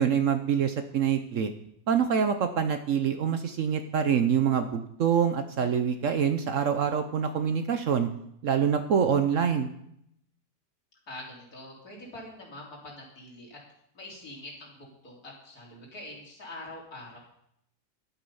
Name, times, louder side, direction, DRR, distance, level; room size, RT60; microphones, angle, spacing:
voice 1, 0.0-1.5 1.9-8.1 8.4-9.7, right 7 dB, 60° right, 9 dB, 0.9 m, -25 dB
voice 2, 11.1-13.6 13.9-17.2, left 1 dB, 60° left, -3 dB, 3.7 m, -44 dB
11.5 x 8.7 x 5.4 m, 0.74 s
omnidirectional pair, 1.8 m